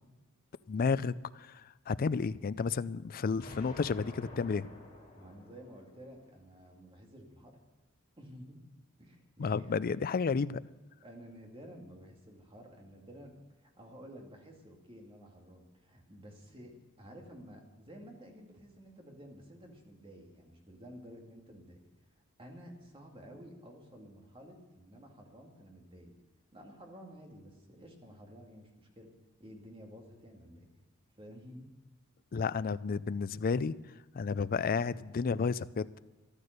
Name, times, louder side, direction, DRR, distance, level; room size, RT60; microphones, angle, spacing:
voice 1, 0.7-4.7 9.4-10.6 32.3-33.7 34.1-36.0, left 5 dB, 40° left, 17 dB, 0.4 m, -32 dB
Explosion, 3.4-6.4, left 1 dB, 20° left, 5.1 m, -50 dB
voice 2, 5.2-7.6 8.2-8.6 9.0-9.8 11.0-13.3 13.6-16.7 17.0-21.8 22.4-26.1 26.5-29.1 29.4-30.7 31.2-31.6, equal, 25° right, 1 dB, 2.4 m, -52 dB
13.5 x 12.0 x 6.6 m, 1.1 s
head